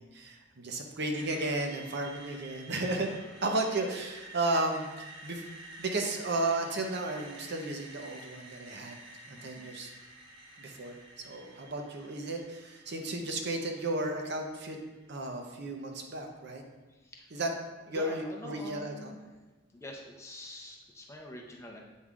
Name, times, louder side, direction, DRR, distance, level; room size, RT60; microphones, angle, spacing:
voice 1, 0.0-3.1 3.4-5.4 5.8-9.0 9.3-9.9 10.6-11.0 11.2-14.8 15.1-16.6 17.3-17.5 17.9-19.1, right 2 dB, 55° right, 3 dB, 0.7 m, -34 dB
Screech, 1.1-15.1, right 2 dB, 90° right, 1.1 m, -50 dB
voice 2, 9.3-9.7 16.9-17.3 17.9-19.2 19.7-21.8, left 1 dB, 15° left, -1 dB, 0.6 m, -45 dB
8.1 x 5.4 x 2.4 m, 1.1 s
head